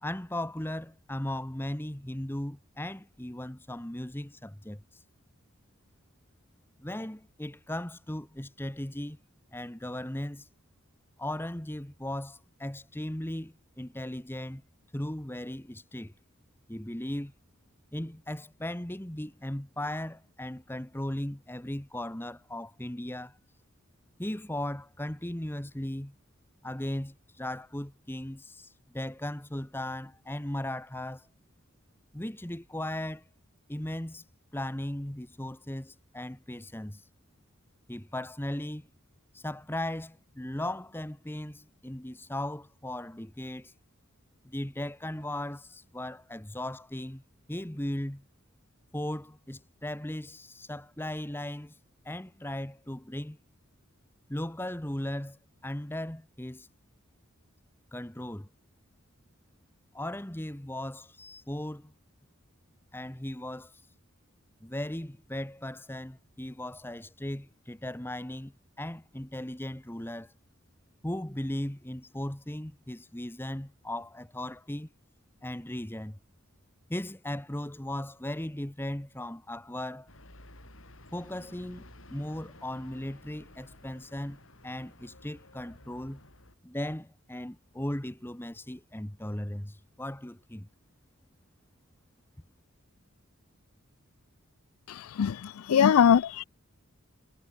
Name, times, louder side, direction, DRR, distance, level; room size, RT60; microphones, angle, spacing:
voice 1, 0.0-4.8 6.8-9.2 9.5-10.5 11.2-14.6 14.9-16.1 16.7-17.3 17.9-23.4 24.2-26.1 26.6-31.3 32.1-33.2 33.7-34.2 34.5-37.0 37.9-38.9 39.3-43.7 44.4-47.2 47.5-48.2 48.9-51.7 52.0-53.4 54.3-56.7 57.9-58.5 59.9-61.9 62.9-63.7 64.6-70.3 71.0-74.9 75.4-76.2 76.9-80.1 81.1-86.2 86.6-90.7, left 1 dB, 10° left, 1.0 m, -37 dB
sound 1, 80.1-86.6, left 1 dB, 65° left, 7.3 m, -53 dB
voice 2, 94.9-96.4, left 8 dB, 85° left, 0.4 m, -22 dB
head